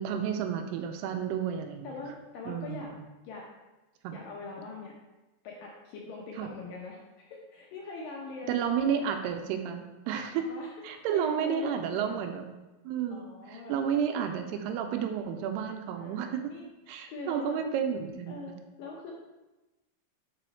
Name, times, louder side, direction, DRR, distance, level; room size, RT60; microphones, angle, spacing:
voice 1, 0.0-1.9 2.5-3.0 4.0-4.2 6.4-6.5 8.5-10.4 10.8-12.5 12.8-16.5 16.9-18.5, right 8 dB, 85° right, 6 dB, 2.6 m, -31 dB
voice 2, 1.8-2.9 3.2-3.5 4.1-4.9 5.4-9.1 10.1-12.2 13.1-13.8 14.2-14.7 15.9-16.7 17.1-17.7 18.3-19.1, left 3 dB, 75° left, -2 dB, 2.1 m, -43 dB
6.1 x 4.9 x 4.4 m, 1.1 s
omnidirectional pair, 4.7 m